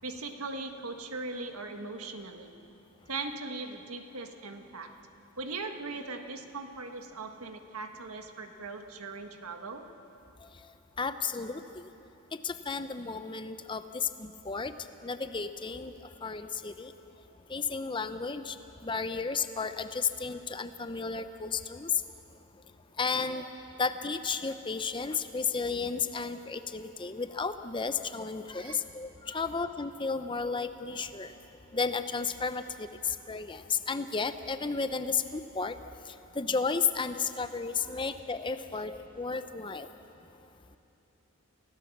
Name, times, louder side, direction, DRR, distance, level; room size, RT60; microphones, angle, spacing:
voice 1, 0.0-2.5 3.1-4.9 5.4-9.9 28.5-28.8 29.3-29.4 39.8-39.9, right 3 dB, 80° right, 5 dB, 1.6 m, -39 dB
voice 2, 11.0-11.8 12.4-14.7 15.0-15.9 16.2-16.9 17.5-18.6 18.8-22.0 23.0-23.5 23.8-31.3 31.7-35.8 36.4-39.9, left 5 dB, 20° left, 10 dB, 0.6 m, -33 dB
30.0 x 16.5 x 7.3 m, 2.9 s
head